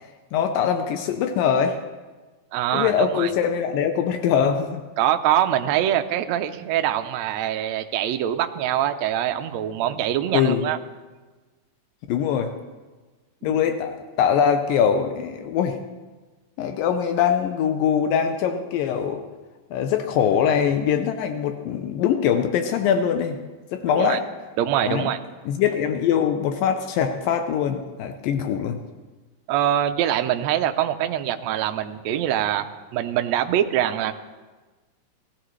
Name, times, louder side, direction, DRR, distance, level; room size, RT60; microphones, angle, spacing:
voice 1, 0.3-1.8 2.7-4.8 10.3-10.7 12.1-12.5 13.4-15.8 16.6-19.2 19.7-23.4 23.7-24.2 24.8-25.1 25.5-28.8, left 8 dB, 80° left, 6 dB, 2.4 m, -22 dB
voice 2, 2.5-3.3 5.0-10.8 13.4-13.6 23.9-24.2 24.6-25.2 29.5-32.7 32.9-34.1, right 11 dB, 80° right, 7 dB, 1.6 m, -24 dB
19.5 x 15.0 x 3.2 m, 1.3 s
omnidirectional pair, 4.0 m